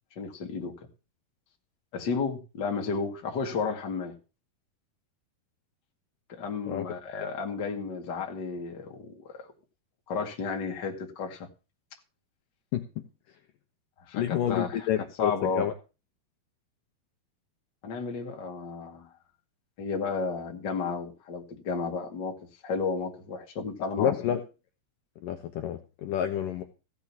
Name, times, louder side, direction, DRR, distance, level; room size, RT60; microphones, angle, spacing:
voice 1, 0.2-0.7 1.9-4.2 6.3-9.5 10.1-11.5 14.1-14.7 15.2-15.7 17.8-19.1 19.8-24.1, left 5 dB, 35° left, 2.2 m, -32 dB
voice 2, 6.7-7.3 12.7-12.8 14.1-15.7 24.0-24.4 25.2-26.6, left 10 dB, 70° left, 2.4 m, -29 dB
16.0 x 6.4 x 7.1 m
omnidirectional pair, 4.6 m